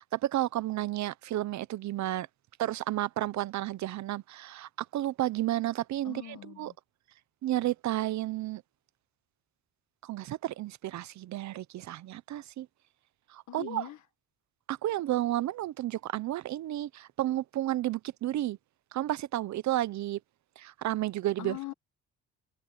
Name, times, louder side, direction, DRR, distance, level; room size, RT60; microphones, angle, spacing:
voice 1, 0.0-2.3 2.6-6.7 7.4-8.6 10.0-12.7 13.3-13.9 14.7-18.6 18.9-20.2 20.6-21.6, right 14 dB, 70° right, 0.8 m, -32 dB
voice 2, 6.0-6.7 13.5-14.0 21.4-21.7, left 13 dB, 75° left, 1.7 m, -41 dB
cardioid pair, 90°, 30 cm